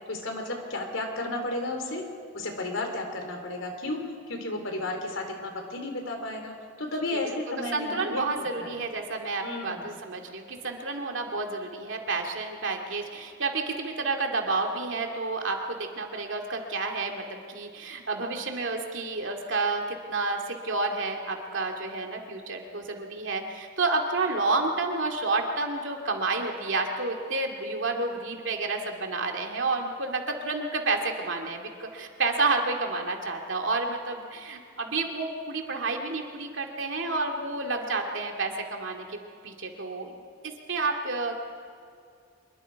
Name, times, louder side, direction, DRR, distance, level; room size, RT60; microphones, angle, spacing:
voice 1, 0.1-2.0 2.3-4.0 4.3-8.7 9.4-9.9, left 2 dB, 75° left, 4 dB, 3.3 m, -33 dB
voice 2, 7.1-39.2 39.4-40.1 40.4-41.3, right 3 dB, 75° right, 2 dB, 2.4 m, -30 dB
25.0 x 22.5 x 4.7 m, 2.3 s
head